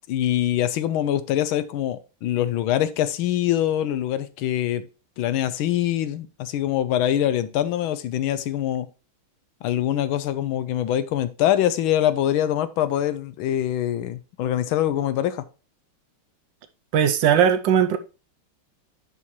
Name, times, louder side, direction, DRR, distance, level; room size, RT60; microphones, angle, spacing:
voice 1, 0.1-4.9 5.2-8.9 9.6-15.4, left 11 dB, 80° left, 1.4 m, -24 dB
voice 2, 16.9-18.0, right 8 dB, 70° right, 1.2 m, -18 dB
11.0 x 4.3 x 3.1 m
omnidirectional pair, 2.3 m